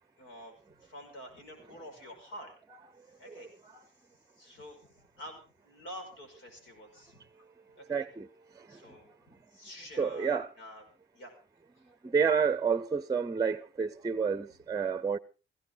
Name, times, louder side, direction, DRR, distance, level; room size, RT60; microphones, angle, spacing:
voice 1, 0.2-0.5 0.8-2.5 3.2-3.5 4.3-7.3 7.7-8.1 8.7-10.8 11.1-11.3, equal, 85° left, 5.6 m, -48 dB
voice 2, 7.9-8.3 8.5-9.0 10.0-10.5 11.9-15.2, right 6 dB, 20° right, 0.7 m, -30 dB
17.0 x 16.0 x 4.0 m
cardioid pair, 90°, 20 cm